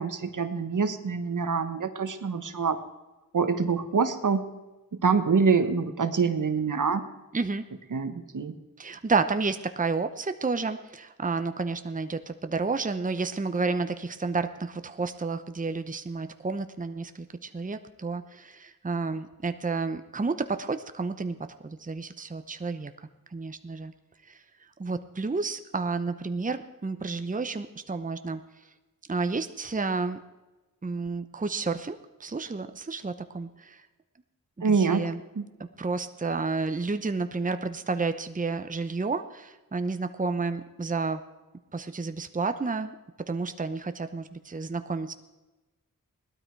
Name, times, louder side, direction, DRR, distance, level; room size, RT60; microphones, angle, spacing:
voice 1, 0.0-2.8 3.3-4.4 5.0-7.0 7.9-8.5 34.6-35.0 35.4-35.5, right 5 dB, 65° right, 9 dB, 1.3 m, -25 dB
voice 2, 7.3-7.6 8.8-23.9 24.2-28.7 29.1-30.2 30.8-33.9 34.7-35.2 35.8-41.2 41.7-43.0 43.3-45.1, right 4 dB, 25° right, 9 dB, 0.8 m, -31 dB
18.0 x 12.5 x 4.6 m, 1.1 s
cardioid pair, 55°, 33 cm